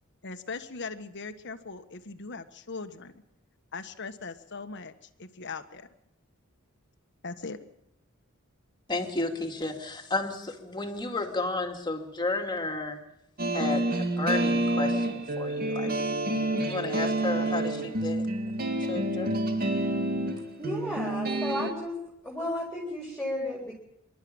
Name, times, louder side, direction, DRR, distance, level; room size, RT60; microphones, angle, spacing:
voice 1, 0.2-3.1 3.7-4.9 5.2-5.9 7.2-7.6, left 4 dB, 60° left, 9 dB, 1.4 m, -39 dB
voice 2, 8.9-13.0 13.5-15.9 16.6-18.2 18.9-19.4, left 2 dB, 20° left, 4 dB, 2.4 m, -32 dB
sound 1, 13.4-21.7, right 1 dB, 45° right, 2.1 m, -28 dB
voice 3, 20.6-22.0 22.2-23.7, equal, 5° left, -3 dB, 3.9 m, -33 dB
26.0 x 12.0 x 8.8 m, 0.80 s
head